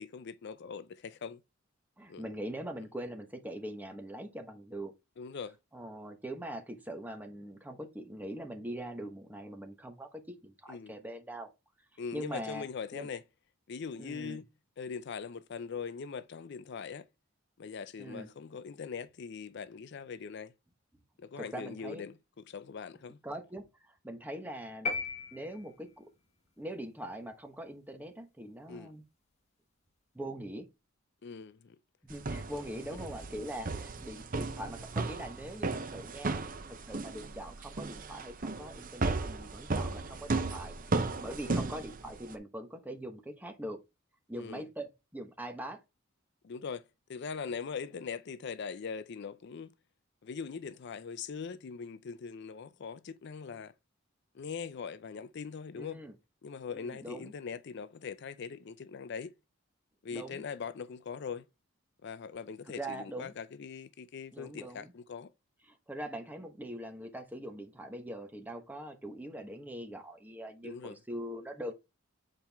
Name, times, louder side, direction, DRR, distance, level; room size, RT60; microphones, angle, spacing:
voice 1, 0.0-1.4 2.1-2.2 5.2-5.6 10.7-11.0 12.0-13.2 13.7-14.4 14.8-17.1 17.6-20.5 21.2-22.2 22.5-23.2 28.7-28.9 31.2-31.8 32.9-33.0 41.4-41.7 44.4-44.6 46.4-46.8 47.1-49.7 50.2-53.7 54.3-56.0 56.4-59.3 60.0-61.4 62.0-65.3 70.6-71.0, left 5 dB, 55° left, 0.4 m, -41 dB
voice 2, 2.0-4.9 5.7-11.5 12.1-12.7 12.9-13.1 14.0-14.4 18.0-18.3 21.4-22.0 23.2-25.0 25.3-26.1 26.6-29.0 30.1-30.7 32.0-36.4 36.7-43.8 44.3-45.8 55.7-56.2 56.7-57.3 60.1-60.4 62.7-63.3 64.3-64.9 65.7-71.7, right 1 dB, 10° right, 1.1 m, -42 dB
sound 1, 24.9-26.1, left 3 dB, 35° left, 1.2 m, -36 dB
sound 2, 32.1-42.3, right 3 dB, 40° right, 0.7 m, -35 dB
7.6 x 4.4 x 3.5 m
head